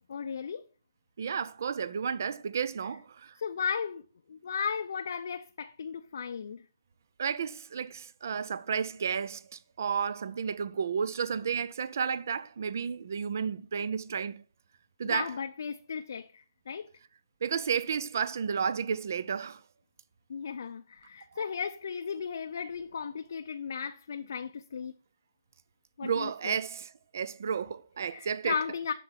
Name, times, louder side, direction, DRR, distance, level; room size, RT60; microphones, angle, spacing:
voice 1, 0.1-0.6 3.4-4.0 4.3-6.6 15.0-16.9 20.3-24.9 26.0-26.6 28.1-28.9, left 6 dB, 50° left, 0.6 m, -35 dB
voice 2, 1.2-3.3 7.2-14.4 15.0-15.4 17.4-19.6 26.0-28.6, right 6 dB, 45° right, 0.5 m, -32 dB
8.2 x 6.8 x 5.7 m
hypercardioid pair, 170°, 2 cm